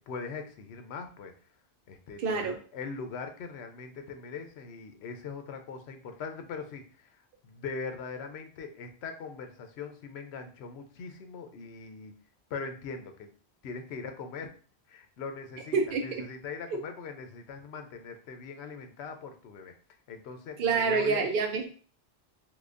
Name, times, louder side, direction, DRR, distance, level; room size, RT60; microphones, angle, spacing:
voice 1, 0.0-1.3 1.9-7.1 7.4-12.1 12.5-13.3 13.6-14.6 14.9-15.8 16.0-19.7 20.1-21.2, left 5 dB, 80° left, 6 dB, 0.8 m, -41 dB
voice 2, 2.2-2.6 15.7-16.2 20.6-21.7, right 4 dB, 60° right, 3 dB, 0.7 m, -27 dB
3.8 x 2.9 x 2.5 m, 0.41 s
omnidirectional pair, 1.1 m